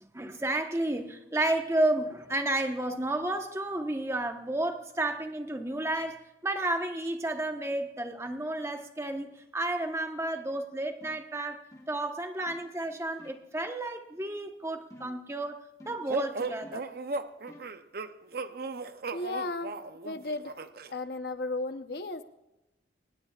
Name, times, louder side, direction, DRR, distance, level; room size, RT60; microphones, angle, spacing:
voice 1, 0.0-16.8, right 1 dB, 15° right, 1.1 m, -32 dB
sound 1, 11.0-11.3 11.7-12.0 12.5-12.7 13.2-13.5 14.9-15.3 15.8-16.2 16.6-17.0 17.5-17.8, equal, 20° left, 1.4 m, -51 dB
sound 2, 16.1-20.9, right 3 dB, 55° right, 0.7 m, -36 dB
voice 2, 19.1-19.8 20.0-20.5 20.9-22.2, left 2 dB, 60° left, 0.9 m, -34 dB
24.0 x 20.0 x 2.4 m
head